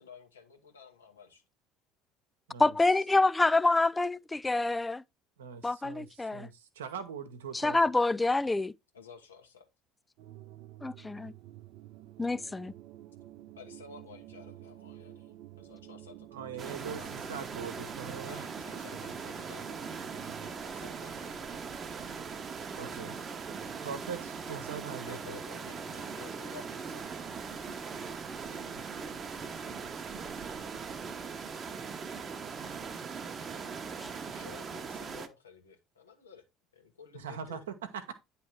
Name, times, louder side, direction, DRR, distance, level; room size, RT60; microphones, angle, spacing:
voice 1, 0.0-1.4 8.9-9.7 13.6-17.4 18.2-21.7 25.0-27.2 34.3-36.4 36.7-37.6, left 6 dB, 85° left, 1.3 m, -53 dB
voice 2, 2.6-5.0 5.6-6.5 7.5-8.7 10.8-11.3 12.2-12.7 34.0-34.1, left 2 dB, 15° left, 0.3 m, -27 dB
voice 3, 5.4-6.1 6.3-7.8 16.3-18.4 22.7-23.2 23.8-25.4 28.7-28.8 37.1-38.1, right 7 dB, 80° right, 1.0 m, -41 dB
sound 1, 10.2-20.5, right 14 dB, 65° right, 0.6 m, -50 dB
sound 2, 16.6-35.3, right 5 dB, 35° right, 0.9 m, -40 dB
9.7 x 3.4 x 4.6 m
hypercardioid pair, 65°, 0 cm